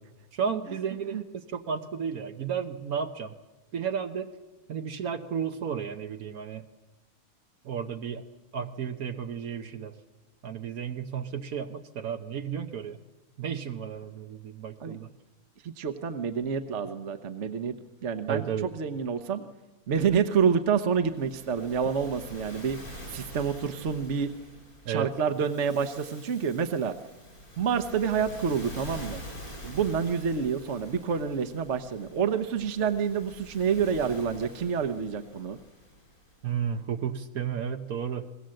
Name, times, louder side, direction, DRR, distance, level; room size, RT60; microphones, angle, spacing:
voice 1, 0.3-3.3 3.7-4.3 4.7-6.6 7.6-8.2 8.5-9.9 10.4-13.0 13.4-15.1 18.3-18.7 24.8-25.1 36.4-38.3, right 7 dB, 80° right, 5 dB, 1.5 m, -33 dB
voice 2, 15.6-17.7 18.0-19.4 19.9-22.8 23.1-24.3 24.9-27.0 27.6-29.2 29.6-35.6, right 6 dB, 55° right, 8 dB, 1.3 m, -28 dB
Waves surf, 21.0-36.5, equal, 85° left, 8.1 m, -46 dB
28.5 x 21.0 x 7.7 m, 1.1 s
omnidirectional pair, 1.5 m